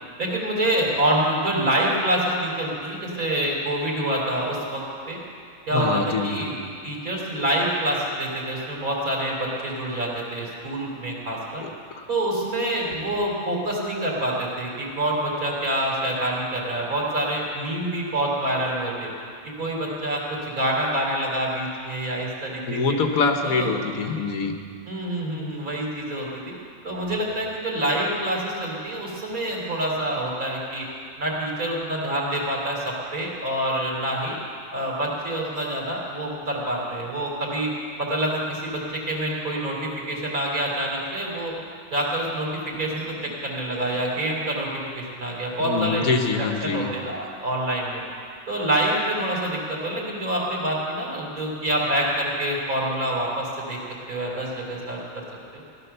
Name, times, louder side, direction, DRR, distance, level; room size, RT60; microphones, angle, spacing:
voice 1, 0.2-5.2 5.7-6.6 6.8-11.6 12.1-19.1 19.6-23.0 23.4-23.7 24.9-26.5 26.8-30.8 31.2-34.4 34.7-37.7 38.0-41.5 41.9-46.2 46.6-48.0 48.5-53.8 54.1-55.2 55.5-55.6, right 1 dB, 80° right, -3 dB, 3.7 m, -26 dB
voice 2, 5.7-6.5 11.6-11.7 11.9-12.0 22.7-24.5 45.6-46.9, left 4 dB, 80° left, 5 dB, 1.7 m, -24 dB
16.0 x 12.0 x 6.8 m, 2.3 s
omnidirectional pair, 1.5 m